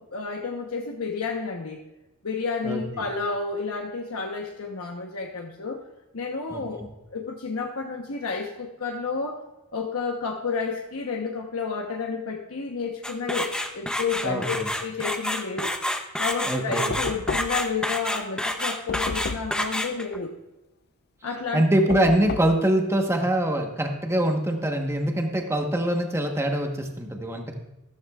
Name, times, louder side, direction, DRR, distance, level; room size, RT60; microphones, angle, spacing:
voice 1, 0.0-1.8 2.2-5.8 6.1-9.4 9.7-14.6 14.8-15.7 16.2-20.3 21.2-22.0, left 4 dB, 70° left, 1 dB, 1.0 m, -31 dB
sound 1, 13.0-20.2, left 1 dB, 5° left, 0.7 m, -28 dB
voice 2, 14.2-14.7 16.4-16.9 21.5-27.6, right 1 dB, 10° right, 3 dB, 1.1 m, -24 dB
Knock, 16.9-17.8 18.9-19.6 21.9-22.6, left 4 dB, 45° left, 0.4 m, -32 dB
14.0 x 13.5 x 2.4 m, 0.98 s
head